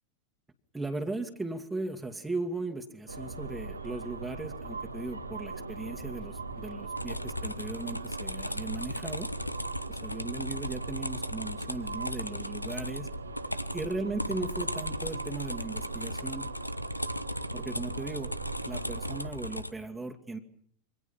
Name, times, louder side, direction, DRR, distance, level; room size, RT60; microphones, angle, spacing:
voice 1, 0.7-9.3 9.9-13.1 13.7-16.5 17.5-18.3 18.6-20.4, right 2 dB, 5° right, 1 dB, 2.4 m, -37 dB
sound 1, 3.1-19.3, right 3 dB, 80° right, 2.1 m, -40 dB
sound 2, 6.6-19.7, left 1 dB, 90° left, 1.0 m, -37 dB
28.0 x 24.5 x 5.8 m, 0.65 s
figure-of-eight pair, 90°, 0 cm